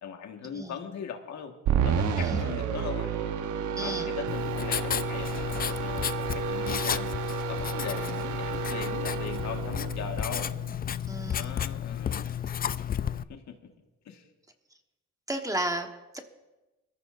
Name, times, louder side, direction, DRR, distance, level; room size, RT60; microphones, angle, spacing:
voice 1, 0.0-1.5 1.8-3.1 3.8-10.5 11.3-12.3 13.3-13.5 14.0-14.3, left 7 dB, 65° left, 4 dB, 1.6 m, -39 dB
sound 1, 1.7-11.0, right 7 dB, 75° right, 1.1 m, -31 dB
voice 2, 3.8-4.1 11.1-11.5 15.3-16.2, right 1 dB, 10° right, 5 dB, 1.2 m, -33 dB
Writing, 4.3-13.2, left 9 dB, 30° left, 0.4 m, -32 dB
21.5 x 14.0 x 2.6 m, 1.1 s
cardioid pair, 90°, 30 cm